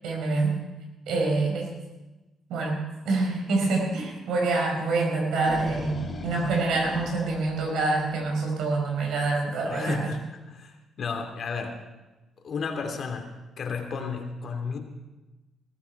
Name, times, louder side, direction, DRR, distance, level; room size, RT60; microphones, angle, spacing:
voice 1, 0.0-0.5 1.1-1.7 2.5-10.1, right 3 dB, 80° right, 1 dB, 4.6 m, -26 dB
sound 1, 5.3-8.3, left 3 dB, 35° left, 3.3 m, -39 dB
voice 2, 9.7-11.8 12.4-14.8, left 5 dB, 55° left, 4 dB, 2.7 m, -33 dB
19.5 x 14.0 x 4.7 m, 1.1 s
cardioid pair, 90°, 0 cm